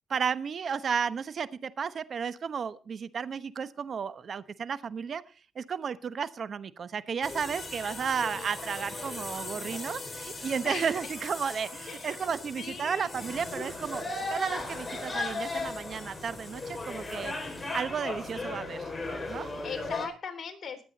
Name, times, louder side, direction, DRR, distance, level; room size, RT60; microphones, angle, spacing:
voice 1, 0.1-5.2 5.5-17.3 17.7-18.9 19.3-19.5, right 6 dB, 50° right, 15 dB, 1.0 m, -33 dB
sound 1, 7.2-20.1, left 2 dB, 15° left, 4.5 m, -37 dB
voice 2, 10.6-11.1 11.9-12.2 12.5-13.3 19.6-20.8, left 6 dB, 45° left, 5 dB, 3.7 m, -40 dB
20.0 x 8.4 x 4.1 m, 0.37 s
cardioid pair, 90°, 0 cm